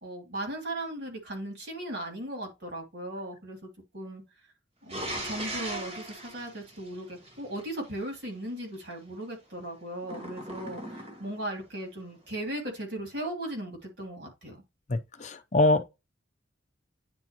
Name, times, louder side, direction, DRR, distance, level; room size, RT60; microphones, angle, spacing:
voice 1, 0.0-4.2 4.8-14.6, right 1 dB, 60° right, 2.7 m, -37 dB
sound 1, 4.9-7.6 10.0-11.5, right 1 dB, 35° right, 1.6 m, -38 dB
voice 2, 14.9-15.9, left 2 dB, 40° left, 0.6 m, -24 dB
9.6 x 4.1 x 2.9 m
head